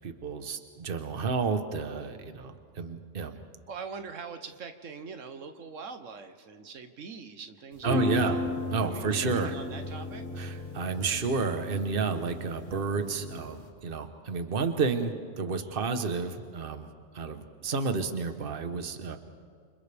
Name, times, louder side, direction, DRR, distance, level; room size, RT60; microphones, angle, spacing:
voice 1, 0.0-3.4 7.8-8.4 8.7-9.6 10.4-16.9 17.1-19.2, right 4 dB, 50° right, 8 dB, 1.3 m, -31 dB
voice 2, 3.7-8.4 8.8-10.4 15.6-15.7, right 5 dB, 85° right, 8 dB, 1.4 m, -43 dB
sound 1, 7.7-13.7, left 2 dB, 55° left, 2.7 m, -35 dB
29.0 x 26.5 x 3.5 m, 2.2 s
omnidirectional pair, 1.3 m